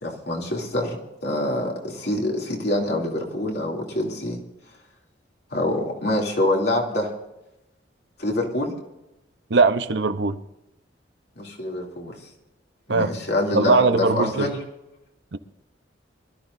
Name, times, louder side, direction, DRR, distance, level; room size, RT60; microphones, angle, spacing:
voice 1, 0.0-4.4 5.5-7.1 8.2-8.7 11.4-12.1 12.9-14.6, left 1 dB, 60° left, 2.9 m, -25 dB
voice 2, 9.5-10.4 12.9-13.2 13.5-14.5 15.3-15.4, right 3 dB, 65° right, 0.8 m, -20 dB
24.5 x 13.5 x 2.6 m
head